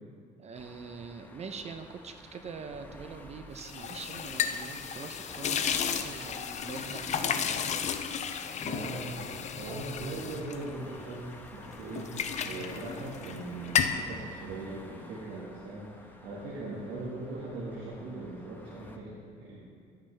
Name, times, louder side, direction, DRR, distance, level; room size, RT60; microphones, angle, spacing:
voice 1, 0.4-7.5, right 5 dB, 40° right, 7 dB, 0.6 m, -44 dB
sound 1, 0.5-19.0, left 1 dB, 10° left, 0.9 m, -51 dB
sound 2, 3.6-11.4 11.7-13.4 13.6-14.1, left 7 dB, 45° left, 0.6 m, -33 dB
voice 2, 8.4-19.6, right 2 dB, 85° right, -6 dB, 1.7 m, -40 dB
11.5 x 9.0 x 3.3 m, 2.3 s
cardioid pair, 110°, 17 cm